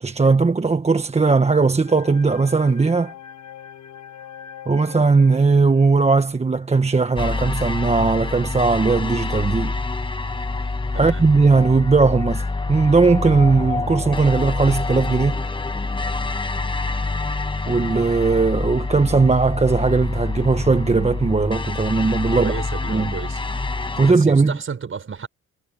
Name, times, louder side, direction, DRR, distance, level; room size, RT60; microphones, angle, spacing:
voice 1, 0.0-3.1 4.7-9.7 10.9-15.5 17.7-22.5 22.9-23.1 24.0-24.6, right 4 dB, 20° right, 1.2 m, -18 dB
sound 1, 1.9-6.3, left 8 dB, 70° left, 6.1 m, -41 dB
sound 2, 7.2-24.1, left 3 dB, 15° left, 1.3 m, -26 dB
voice 2, 10.9-11.2 22.3-23.4 24.1-25.3, right 6 dB, 45° right, 6.3 m, -32 dB
cardioid pair, 90°, 30 cm